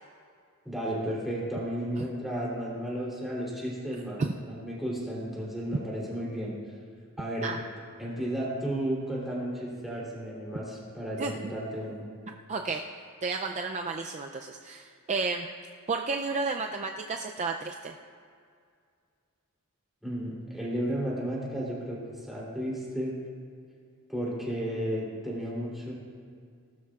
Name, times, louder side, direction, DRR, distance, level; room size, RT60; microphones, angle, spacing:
voice 1, 0.6-6.6 7.2-7.5 8.0-12.1 20.0-23.2 24.1-25.9, equal, ahead, -6 dB, 3.1 m, -33 dB
voice 2, 12.5-12.8 13.2-15.5 15.9-17.9, right 4 dB, 30° right, 3 dB, 0.4 m, -32 dB
19.0 x 12.5 x 2.4 m, 2.3 s
head